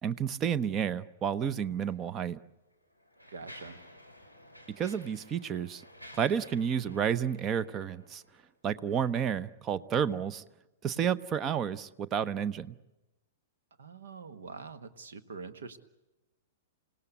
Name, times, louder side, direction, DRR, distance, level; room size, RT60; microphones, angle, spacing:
voice 1, 0.0-2.4 4.8-5.8 6.1-8.2 8.6-10.4 10.8-12.7, right 8 dB, 25° right, 16 dB, 0.8 m, -31 dB
Mechanisms, 1.8-2.0 2.7-8.4, equal, 85° right, 4.1 m, -53 dB
voice 2, 3.3-3.8 13.8-15.8, right 4 dB, 60° right, 11 dB, 1.5 m, -44 dB
28.5 x 18.0 x 8.2 m, 1.0 s
figure-of-eight pair, 105°, 0 cm